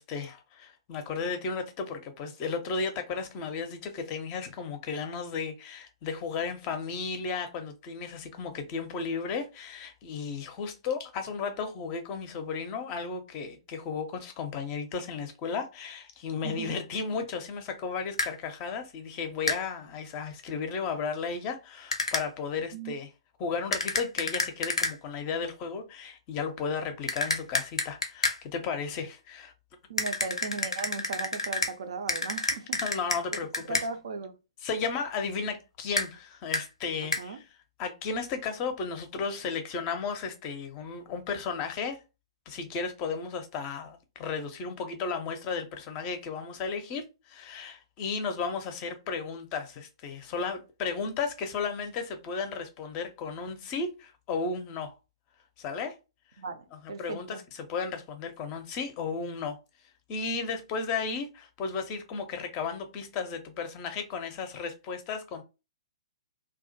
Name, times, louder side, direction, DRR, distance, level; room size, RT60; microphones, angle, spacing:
voice 1, 0.0-23.1 23.4-29.5 32.8-33.8 34.6-37.4 37.8-42.0 42.5-54.9 55.6-55.9 56.8-59.6 60.1-65.4, left 5 dB, 30° left, 0.5 m, -34 dB
voice 2, 16.4-16.8 22.7-22.9 29.9-32.8 33.7-34.4 37.0-37.4 56.4-57.4, right 4 dB, 60° right, 0.4 m, -37 dB
sound 1, 18.2-18.3 19.5-19.6 21.9-22.3 23.7-24.9 27.1-28.4 30.0-31.7 32.1-33.9 36.0-36.1 36.5-36.7 37.1-37.2, left 2 dB, 80° left, 0.5 m, -29 dB
2.2 x 2.1 x 2.6 m
figure-of-eight pair, 120°, 3 cm